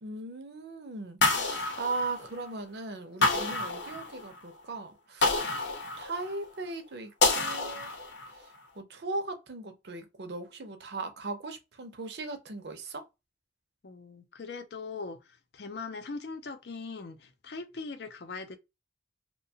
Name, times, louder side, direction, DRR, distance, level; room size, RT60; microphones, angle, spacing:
voice 1, 0.0-5.4 6.0-7.9 8.8-13.0, right 3 dB, 65° right, 0.6 m, -38 dB
sound 1, 1.2-2.6 3.2-4.4 5.2-6.5 7.2-8.4, left 3 dB, 85° left, 0.8 m, -28 dB
voice 2, 13.8-15.2 15.5-18.6, left 4 dB, 65° left, 0.5 m, -40 dB
2.7 x 2.2 x 2.7 m
head